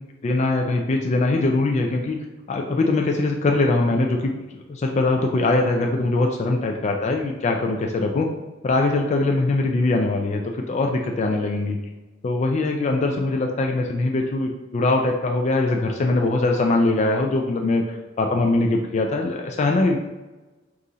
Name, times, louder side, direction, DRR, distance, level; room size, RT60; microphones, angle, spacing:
voice 1, 0.2-2.2 2.5-8.3 8.6-11.8 12.2-20.0, left 2 dB, 35° left, 1 dB, 0.3 m, -22 dB
4.0 x 2.4 x 3.8 m, 1.1 s
head